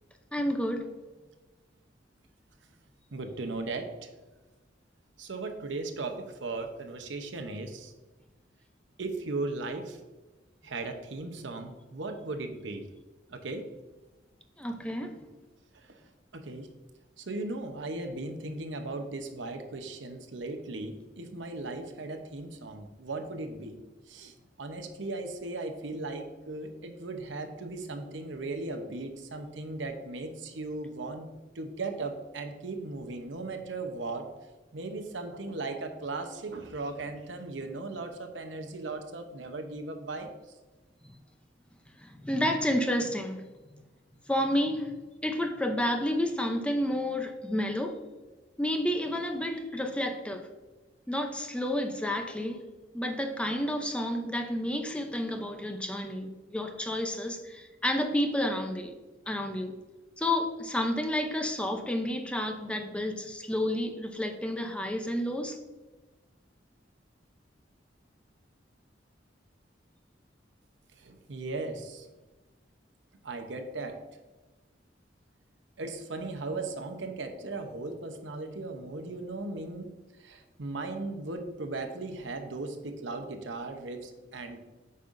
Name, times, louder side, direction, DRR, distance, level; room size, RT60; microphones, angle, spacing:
voice 1, 0.3-0.9 14.6-15.1 42.0-43.4 44.3-44.9 45.2-48.0 48.6-50.5 51.1-52.6 52.9-59.0 59.3-59.8 60.2-65.6, left 1 dB, 5° left, 5 dB, 0.6 m, -30 dB
voice 2, 3.1-4.1 5.2-7.9 9.0-10.0 10.6-12.9 13.3-13.7 15.7-16.0 16.3-16.7 17.2-23.8 24.1-31.3 31.5-34.3 34.7-40.3 71.0-72.1 73.2-74.0 75.8-79.9 80.2-84.7, right 3 dB, 85° right, 5 dB, 0.8 m, -37 dB
8.5 x 5.5 x 2.6 m, 1.2 s
head